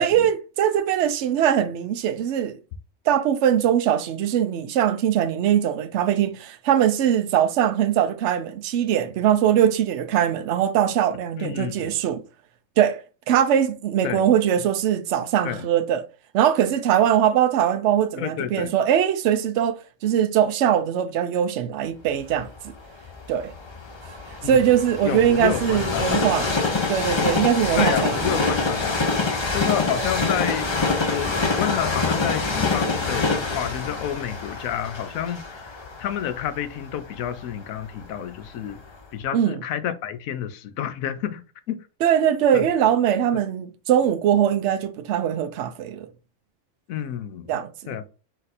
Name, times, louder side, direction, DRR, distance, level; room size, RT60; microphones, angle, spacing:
voice 1, 0.0-2.6 3.1-12.2 12.8-13.0 13.3-16.0 16.3-22.7 23.3-23.5 24.0-24.2 24.4-26.5 26.9-28.3 30.0-30.1 39.3-39.6 42.0-46.1 47.5-48.0, right 9 dB, 65° right, 0.8 m, -21 dB
voice 2, 11.4-12.0 14.0-14.3 15.4-15.7 18.2-18.7 24.4-24.7 25.0-26.2 27.8-29.2 29.5-38.8 39.1-41.4 41.7-41.9 42.5-42.7 46.9-47.6 47.9-48.1, left 9 dB, 90° left, 1.0 m, -30 dB
Train, 22.3-38.3 38.8-38.9, left 3 dB, 30° left, 0.5 m, -26 dB
4.2 x 2.5 x 4.1 m
omnidirectional pair, 1.4 m